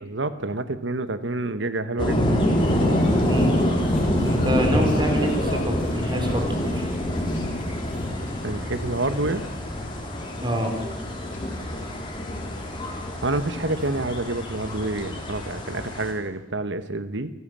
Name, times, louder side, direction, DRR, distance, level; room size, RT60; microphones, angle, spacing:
voice 1, 0.0-2.2 2.7-3.1 8.4-9.5 13.2-17.3, right 2 dB, 70° right, 12 dB, 1.3 m, -28 dB
sound 1, 2.0-16.1, equal, 25° left, 3.7 m, -26 dB
sound 2, 2.6-14.8, left 1 dB, 40° left, 4.4 m, -41 dB
voice 2, 3.2-3.6 4.2-6.9 10.4-10.7, equal, 25° right, 3 dB, 4.1 m, -26 dB
26.5 x 14.5 x 7.6 m, 1.1 s
head